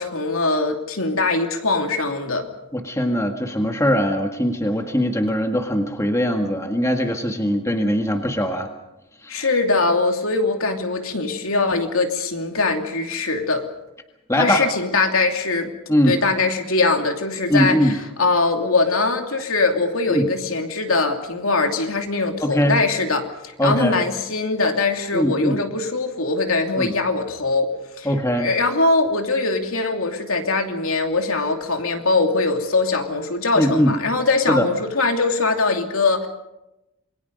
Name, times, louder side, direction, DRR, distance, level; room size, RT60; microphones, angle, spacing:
voice 1, 0.0-2.5 9.3-13.7 14.4-15.7 16.1-17.9 18.2-27.7 28.0-28.1 28.3-36.3, left 3 dB, 70° left, 4 dB, 2.8 m, -22 dB
voice 2, 2.7-8.7 9.2-9.5 14.3-14.7 15.9-16.2 17.5-18.0 20.1-20.3 22.4-22.8 23.6-24.0 25.1-25.6 26.8-27.0 28.1-28.5 33.6-33.9 34.5-34.7, equal, 15° left, 4 dB, 1.8 m, -21 dB
28.0 x 22.5 x 5.4 m, 0.94 s
head